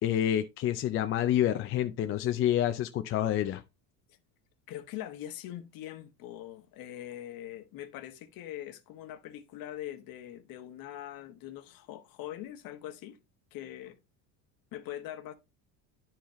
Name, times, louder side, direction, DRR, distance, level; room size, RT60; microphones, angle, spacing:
voice 1, 0.0-3.6, left 11 dB, 30° left, 0.4 m, -28 dB
voice 2, 4.7-13.2 13.5-14.0 14.7-15.3, left 12 dB, 55° left, 1.1 m, -42 dB
10.0 x 4.8 x 3.0 m
cardioid pair, 140°, 42 cm